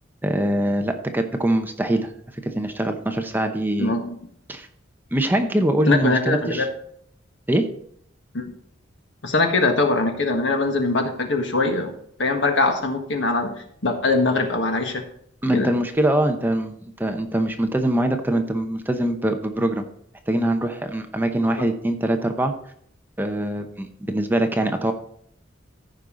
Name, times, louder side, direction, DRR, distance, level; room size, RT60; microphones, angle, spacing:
voice 1, 0.2-2.1 2.4-3.9 4.5-4.7 5.1-6.7 7.5-7.7 15.4-19.8 20.3-22.5 23.2-24.9, right 1 dB, 10° right, 6 dB, 0.8 m, -23 dB
voice 2, 3.8-4.1 5.9-6.7 8.3-8.5 9.2-11.9 12.2-13.5 13.8-15.0 15.5-15.7, left 3 dB, 70° left, 4 dB, 1.5 m, -22 dB
14.5 x 5.4 x 3.8 m, 0.66 s
head